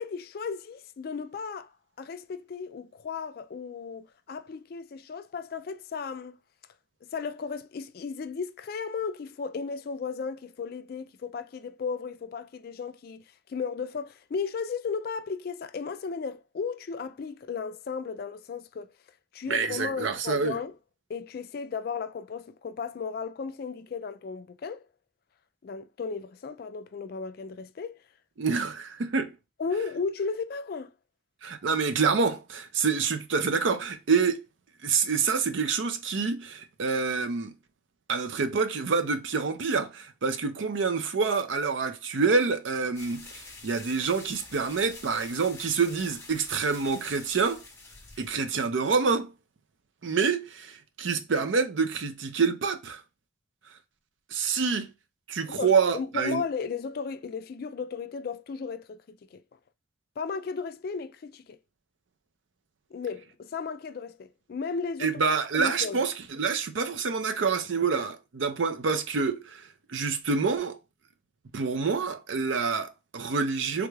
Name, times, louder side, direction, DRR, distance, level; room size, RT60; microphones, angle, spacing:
voice 1, 0.0-1.7 2.0-6.4 7.0-18.9 19.3-20.7 21.1-24.8 25.6-28.0 29.6-30.9 55.5-59.4 60.2-61.6 62.9-65.1 65.5-66.0, left 5 dB, 50° left, 0.3 m, -35 dB
voice 2, 19.5-20.6 28.4-29.4 31.4-34.4 34.8-37.5 38.1-47.6 48.2-49.3 50.0-53.0 54.3-54.9 55.3-56.4 65.0-69.6 69.9-70.8 71.5-73.9, right 5 dB, 85° right, 0.5 m, -27 dB
sound 1, 42.9-48.6, left 3 dB, 15° left, 0.7 m, -47 dB
3.5 x 2.3 x 3.1 m
head